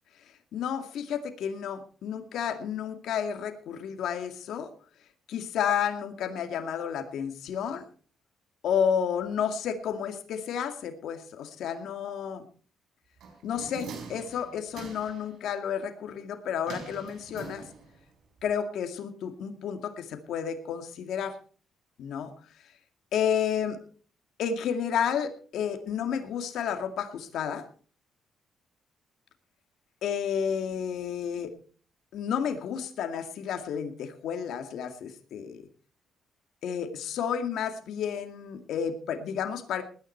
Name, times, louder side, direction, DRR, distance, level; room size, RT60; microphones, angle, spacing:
voice 1, 0.5-4.7 5.3-7.8 8.6-12.4 13.4-17.6 18.4-21.3 22.0-22.3 23.1-23.8 24.4-27.6 30.0-31.5 32.1-35.6 36.6-39.8, left 8 dB, 75° left, 6 dB, 2.2 m, -31 dB
sound 1, 13.2-15.3 16.7-18.1 18.4-18.5, right 5 dB, 75° right, 5.5 m, -43 dB
20.0 x 10.0 x 4.6 m, 0.42 s
cardioid pair, 90°, 0 cm